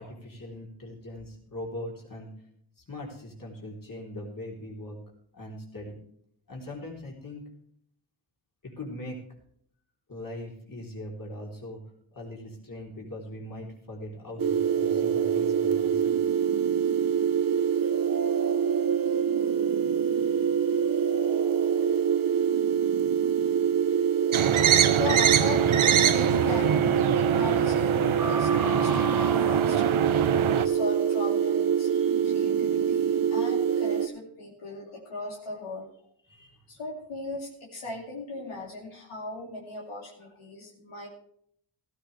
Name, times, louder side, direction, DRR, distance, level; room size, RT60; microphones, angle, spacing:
voice 1, 0.0-2.3 2.8-5.0 5.3-6.0 6.5-7.4 8.6-9.2 10.1-11.8 12.1-16.2 36.3-36.6, left 1 dB, 40° left, -2 dB, 3.7 m, -40 dB
sound 1, 14.4-34.1, right 7 dB, 45° right, 0.9 m, -25 dB
sound 2, 24.3-30.7, right 8 dB, 80° right, 0.9 m, -25 dB
voice 2, 24.9-30.0 30.6-35.9 36.7-41.1, left 2 dB, 90° left, -2 dB, 2.7 m, -38 dB
14.5 x 13.5 x 3.4 m, 0.66 s
cardioid pair, 50°, 48 cm